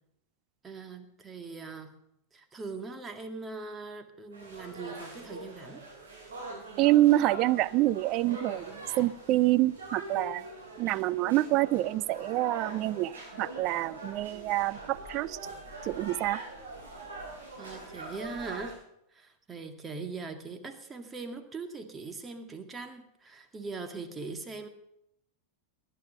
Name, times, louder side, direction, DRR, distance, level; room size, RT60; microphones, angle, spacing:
voice 1, 0.6-1.9 2.3-5.8 17.6-18.8 19.1-24.7, right 4 dB, 20° right, 7 dB, 1.9 m, -41 dB
sound 1, 4.3-18.7, right 2 dB, 65° right, 6.7 m, -43 dB
voice 2, 6.8-10.4 10.8-15.4 15.8-16.4, right 16 dB, 40° right, 19 dB, 0.5 m, -26 dB
19.5 x 10.5 x 6.8 m, 0.81 s
figure-of-eight pair, 90°, 0 cm